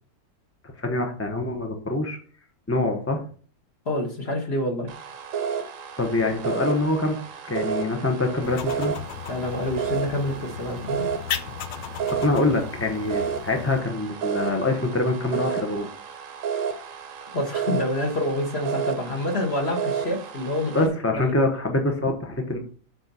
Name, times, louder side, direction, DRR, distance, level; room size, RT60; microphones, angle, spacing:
voice 1, 0.8-2.2 2.7-3.2 6.0-7.2 7.5-8.9 12.1-15.9 20.7-22.6, left 2 dB, 10° left, 3 dB, 0.7 m, -25 dB
voice 2, 3.9-4.9 9.3-11.1 17.3-20.9 21.2-21.4, left 1 dB, 35° left, 1 dB, 1.6 m, -27 dB
sound 1, 4.9-20.9, right 7 dB, 55° right, 1.0 m, -32 dB
sound 2, 8.4-13.8, left 9 dB, 85° left, 1.3 m, -36 dB
7.5 x 4.4 x 5.5 m, 0.43 s
omnidirectional pair, 2.0 m